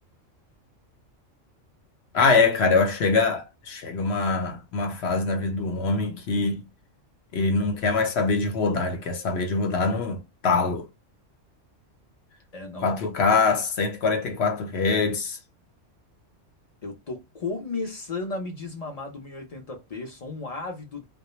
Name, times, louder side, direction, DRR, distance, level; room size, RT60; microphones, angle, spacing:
voice 1, 2.1-6.7 7.3-10.9 12.8-15.4, left 4 dB, 65° left, 0.8 m, -24 dB
voice 2, 12.5-13.2 16.8-21.0, left 3 dB, 45° left, 0.5 m, -34 dB
2.2 x 2.0 x 2.9 m
omnidirectional pair, 1.3 m